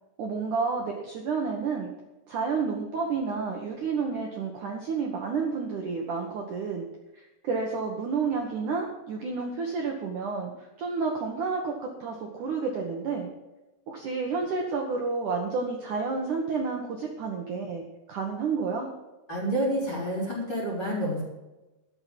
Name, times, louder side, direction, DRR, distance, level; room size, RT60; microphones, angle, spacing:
voice 1, 0.2-1.9 2.3-6.9 7.1-13.3 13.9-17.8 18.1-18.9, right 4 dB, 70° right, 1 dB, 1.9 m, -30 dB
voice 2, 19.3-21.2, equal, 25° left, -6 dB, 4.2 m, -28 dB
12.5 x 7.7 x 7.6 m, 1.1 s
omnidirectional pair, 5.7 m